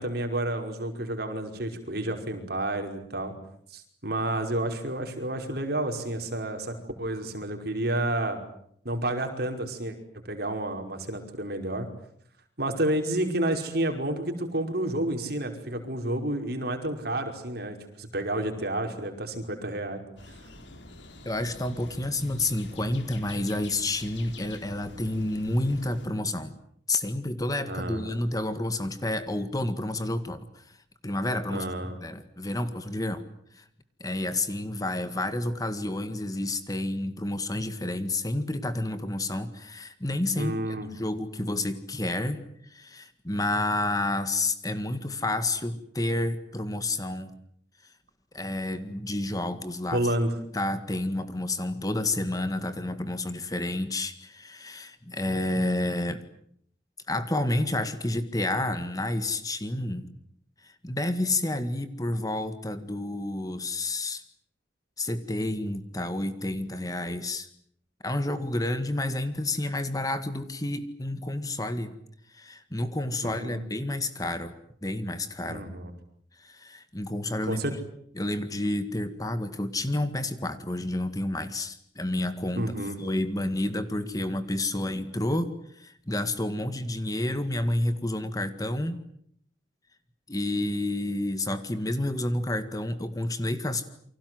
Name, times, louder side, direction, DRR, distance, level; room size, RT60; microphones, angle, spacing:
voice 1, 0.0-3.3 3.7-8.4 8.9-10.0 10.3-11.9 12.6-20.0 27.7-28.0 31.5-32.0 40.4-40.9 49.9-50.3 73.2-73.6 75.5-75.9 77.5-77.7 82.5-83.0, right 1 dB, 55° right, 5 dB, 5.4 m, -30 dB
sound 1, 20.2-26.1, left 2 dB, 75° left, 4.2 m, -46 dB
voice 2, 21.3-26.6 26.9-30.8 31.0-33.2 33.5-33.6 34.0-47.3 48.3-50.0 50.5-56.2 57.1-60.1 60.6-64.2 65.0-67.5 68.0-72.0 72.3-74.5 74.8-75.6 76.4-77.6 78.2-82.7 83.0-89.0 90.3-93.9, left 1 dB, 20° left, 10 dB, 1.9 m, -30 dB
29.5 x 24.5 x 7.9 m, 0.66 s
head